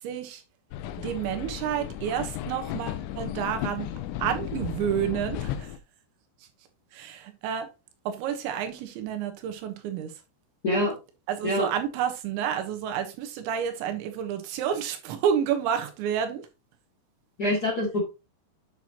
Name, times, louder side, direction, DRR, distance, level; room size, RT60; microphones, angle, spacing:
voice 1, 0.0-0.4 1.0-3.9 4.2-5.7 6.9-7.7 8.1-10.1 11.3-16.5, right 9 dB, 85° right, 3.5 m, -30 dB
sound 1, 0.7-5.8, left 11 dB, 90° left, 3.0 m, -34 dB
voice 2, 10.6-10.9 11.4-11.7 17.4-18.0, left 1 dB, 35° left, 1.6 m, -25 dB
8.9 x 6.1 x 2.9 m
omnidirectional pair, 5.2 m